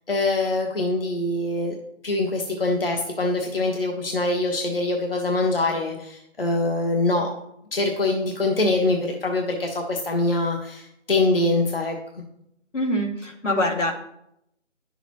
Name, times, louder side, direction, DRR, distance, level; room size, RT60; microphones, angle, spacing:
voice 1, 0.1-1.7 2.0-7.3 7.7-12.0, left 2 dB, 50° left, 2 dB, 1.2 m, -24 dB
voice 2, 12.7-13.9, left 1 dB, 75° left, 1 dB, 2.4 m, -24 dB
10.5 x 7.0 x 3.0 m, 0.78 s
figure-of-eight pair, 170°, 37 cm